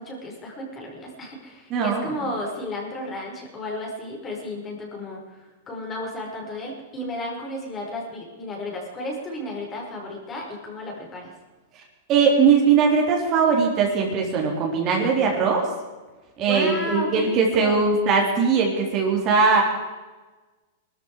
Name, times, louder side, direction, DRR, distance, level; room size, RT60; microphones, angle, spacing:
voice 1, 0.0-11.3 16.4-18.0, left 1 dB, 20° left, -1 dB, 5.3 m, -33 dB
voice 2, 1.7-2.1 12.1-15.6 16.4-19.6, right 5 dB, 30° right, 0 dB, 3.7 m, -20 dB
20.5 x 13.5 x 4.9 m, 1.2 s
supercardioid pair, 145°, 0 cm